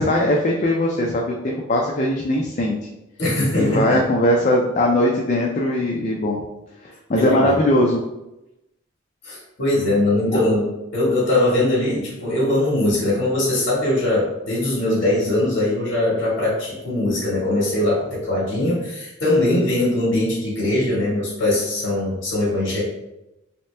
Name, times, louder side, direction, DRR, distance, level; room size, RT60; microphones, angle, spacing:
voice 1, 0.0-2.8 3.6-6.4 6.8-8.0, left 1 dB, 40° left, -1 dB, 0.4 m, -20 dB
voice 2, 3.2-4.0 7.2-7.6 9.2-10.7 10.9-22.8, left 1 dB, 70° left, -9 dB, 1.4 m, -21 dB
3.2 x 2.9 x 3.2 m, 0.93 s
head